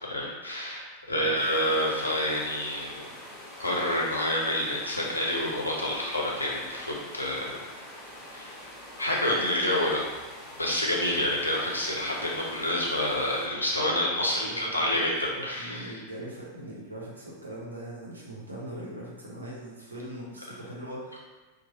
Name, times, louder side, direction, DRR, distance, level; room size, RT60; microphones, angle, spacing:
voice 1, 0.0-3.1 3.6-7.6 8.3-8.5 9.0-10.0 10.6-16.0, left 1 dB, 85° left, -4 dB, 0.6 m, -28 dB
sound 1, 1.3-13.5, left 1 dB, 30° left, 0.8 m, -45 dB
voice 2, 14.4-15.1 15.4-21.2, right 1 dB, 80° right, -4 dB, 0.7 m, -40 dB
3.0 x 2.1 x 2.7 m, 1.3 s
figure-of-eight pair, 90°, 0 cm